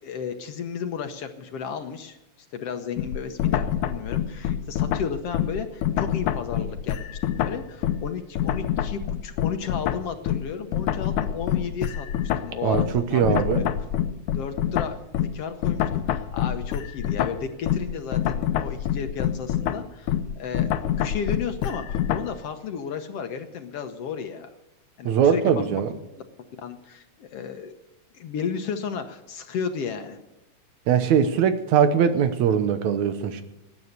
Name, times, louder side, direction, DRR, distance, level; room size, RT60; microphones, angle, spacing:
voice 1, 0.0-2.2 2.5-13.7 14.3-20.7 21.0-24.5 25.0-25.8 26.6-27.7 28.1-30.2, left 6 dB, 65° left, 7 dB, 1.9 m, -33 dB
sound 1, 3.0-8.1 8.4-22.4, left 10 dB, 85° left, 2.2 m, -26 dB
voice 2, 12.6-13.6 25.0-25.9 30.9-33.4, right 7 dB, 75° right, 10 dB, 2.4 m, -21 dB
19.5 x 9.6 x 6.7 m, 0.98 s
omnidirectional pair, 3.3 m